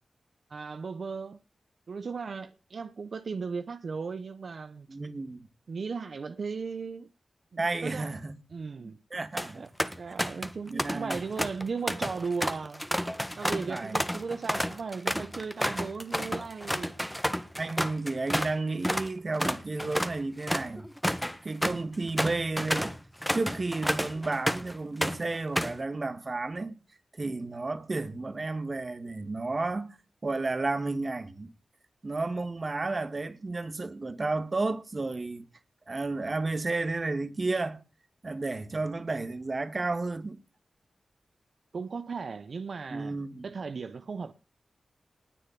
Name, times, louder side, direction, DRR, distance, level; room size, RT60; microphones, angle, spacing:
voice 1, 0.5-1.4 1.9-4.9 5.7-7.1 7.5-8.1 8.5-9.0 9.5-9.7 10.0-12.8 13.4-16.9 41.7-43.2 43.4-44.3, right 5 dB, 70° right, 0.9 m, -36 dB
voice 2, 4.9-5.5 7.6-8.4 8.8-9.7 10.6-11.2 13.7-14.0 17.6-20.9 21.4-23.0 23.3-26.8 27.1-30.0 30.2-31.5 32.0-35.5 35.9-37.8 38.2-40.4 42.9-43.5, right 3 dB, 45° right, 2.0 m, -32 dB
sound 1, 9.1-9.5 9.8-10.5 10.8-18.5 18.8-19.1 19.4-24.7 25.0-25.8, equal, ahead, 1.6 m, -31 dB
19.5 x 6.8 x 8.5 m
cardioid pair, 55°, 0 cm